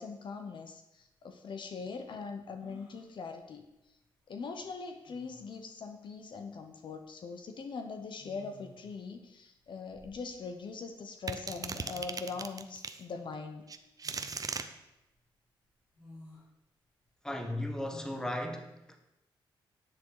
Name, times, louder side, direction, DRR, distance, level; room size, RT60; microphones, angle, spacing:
voice 1, 0.0-3.6 4.3-13.6, left 4 dB, 60° left, 6 dB, 1.0 m, -42 dB
sound 1, 1.0-1.1 2.6-3.1 4.6-4.7 5.1-5.5 6.9-7.1 8.2-8.9 9.6-10.6 11.3-11.4 11.5-12.4 14.0-14.6 15.1-15.2 16.0-16.5 17.8-18.4, left 1 dB, 85° left, 3.9 m, -54 dB
sound 2, 11.3-13.0 13.7-14.7, right 5 dB, 40° right, 0.8 m, -38 dB
voice 2, 17.2-19.0, left 1 dB, 5° left, 5 dB, 1.5 m, -36 dB
10.5 x 7.4 x 4.7 m, 0.91 s
cardioid pair, 75°, 9 cm